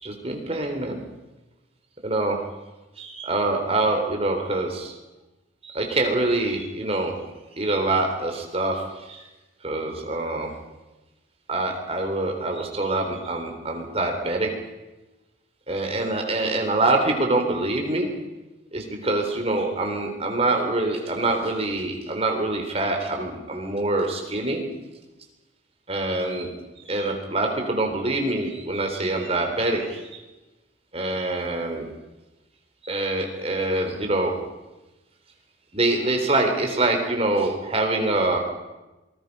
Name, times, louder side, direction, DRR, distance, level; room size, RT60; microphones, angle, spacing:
voice 1, 0.0-1.0 2.0-2.4 3.0-4.9 5.6-7.2 7.6-9.2 9.6-10.5 11.5-14.5 15.7-18.1 18.7-24.6 25.9-26.5 26.9-30.2 30.9-31.9 32.8-34.3 35.7-38.4, right 2 dB, 35° right, 2 dB, 3.8 m, -25 dB
27.0 x 20.0 x 5.5 m, 1.1 s
head